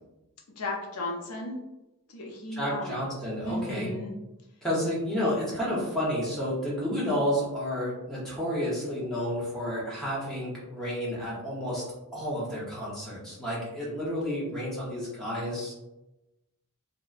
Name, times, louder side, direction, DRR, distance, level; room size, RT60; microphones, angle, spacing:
voice 1, 0.6-1.6 2.1-3.0 3.4-4.1, left 2 dB, 90° left, 0 dB, 0.6 m, -35 dB
voice 2, 2.6-3.9 4.6-11.8 12.1-15.7, equal, ahead, -7 dB, 0.7 m, -30 dB
2.8 x 2.0 x 2.4 m, 0.96 s
head